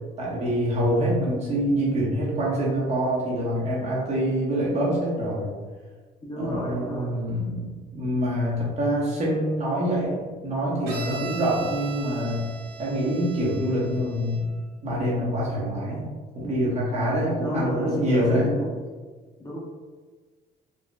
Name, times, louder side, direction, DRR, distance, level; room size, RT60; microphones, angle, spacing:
voice 1, 0.2-5.5 6.4-12.5 12.8-14.5 14.8-16.1 16.3-18.5, equal, 40° right, -5 dB, 1.2 m, -25 dB
voice 2, 6.2-7.1 17.4-18.7 19.4-19.6, equal, 25° left, -4 dB, 0.8 m, -31 dB
Bowed string instrument, 10.9-14.6, right 3 dB, 75° right, 0.8 m, -39 dB
4.0 x 2.5 x 2.3 m, 1.4 s
cardioid pair, 110°, 17 cm